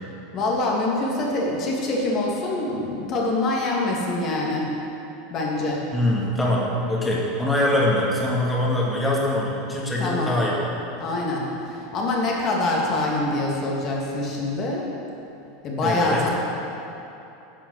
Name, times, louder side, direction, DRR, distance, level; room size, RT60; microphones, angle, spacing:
voice 1, 0.3-4.7 5.3-5.9 10.0-10.3 11.0-14.9 15.6-16.3, left 2 dB, 45° left, -2 dB, 2.7 m, -25 dB
voice 2, 5.9-10.6 15.8-16.3, left 1 dB, 15° left, -4 dB, 2.5 m, -23 dB
11.0 x 5.9 x 8.0 m, 2.9 s
hypercardioid pair, 90°, 0 cm